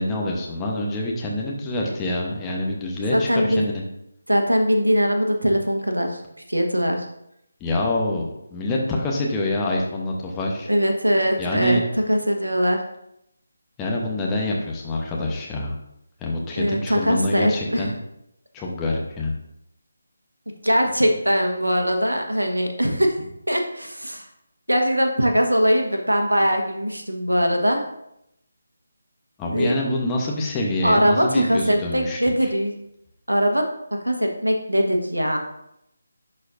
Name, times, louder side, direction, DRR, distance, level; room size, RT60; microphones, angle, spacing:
voice 1, 0.0-3.8 7.6-10.7 11.4-11.8 13.8-15.7 16.2-18.0 18.5-19.3 29.4-32.5, left 1 dB, 10° left, -2 dB, 1.0 m, -26 dB
voice 2, 3.1-3.7 4.3-6.2 6.5-7.1 10.7-11.8 12.1-12.8 16.6-17.9 20.6-24.3 24.7-27.8 29.5-29.7 30.8-32.7 33.3-35.4, equal, 85° right, 3 dB, 1.2 m, -21 dB
11.5 x 4.3 x 2.6 m, 0.80 s
figure-of-eight pair, 155°, 0 cm